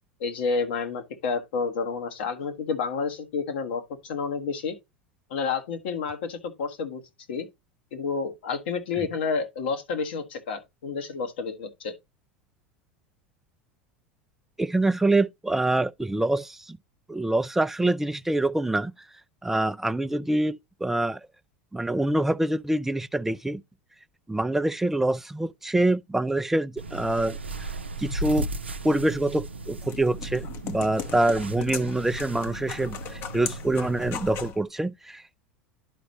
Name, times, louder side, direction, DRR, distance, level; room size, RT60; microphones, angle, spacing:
voice 1, 0.2-4.7 5.3-7.0 7.3-7.5 7.9-11.9, left 5 dB, 65° left, 1.4 m, -30 dB
voice 2, 14.6-16.8 17.1-18.9 19.4-21.2 21.7-23.6 24.3-27.4 28.0-28.5 28.8-35.2, right 2 dB, 5° right, 0.4 m, -25 dB
sound 1, 26.8-34.5, right 2 dB, 85° right, 0.5 m, -36 dB
sound 2, 29.4-34.6, left 8 dB, 45° left, 0.9 m, -39 dB
11.0 x 5.1 x 2.8 m
figure-of-eight pair, 80°, 6 cm